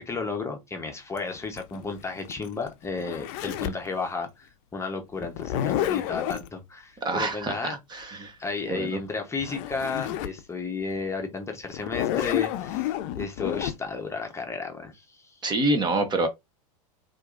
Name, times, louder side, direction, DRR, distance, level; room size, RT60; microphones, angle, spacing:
voice 1, 0.0-8.1 8.4-15.3, left 4 dB, 15° left, 0.8 m, -33 dB
Zipper (clothing), 1.2-3.9 5.2-6.5 9.1-9.2 9.4-10.4 10.9-11.0 11.7-13.7, left 12 dB, 55° left, 0.5 m, -30 dB
voice 2, 7.0-8.4 8.6-9.0 15.4-16.3, right 2 dB, 20° right, 0.8 m, -27 dB
4.4 x 2.5 x 2.4 m
hypercardioid pair, 110°, 19 cm